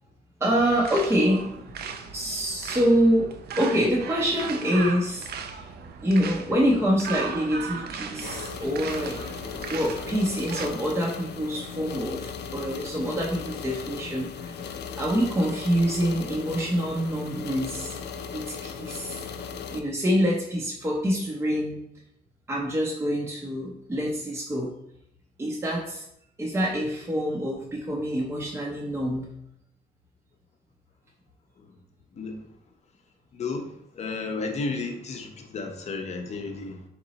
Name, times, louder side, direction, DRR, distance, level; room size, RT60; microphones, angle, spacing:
voice 1, 0.4-1.5 2.1-3.3 3.6-5.3 5.6-5.7 6.0-9.2 9.7-14.5 15.0-18.0 18.3-19.2 19.7-21.8 22.5-24.7 25.4-26.1 26.4-29.3, equal, 15° right, -3 dB, 0.5 m, -26 dB
sound 1, 0.6-10.7, right 6 dB, 70° right, 0.5 m, -37 dB
sound 2, 8.2-19.8, left 6 dB, 90° left, 0.4 m, -37 dB
voice 2, 32.1-32.4 33.3-36.8, left 3 dB, 40° left, 4 dB, 0.6 m, -33 dB
3.9 x 3.0 x 3.9 m, 0.74 s
wide cardioid pair, 165°, 17 cm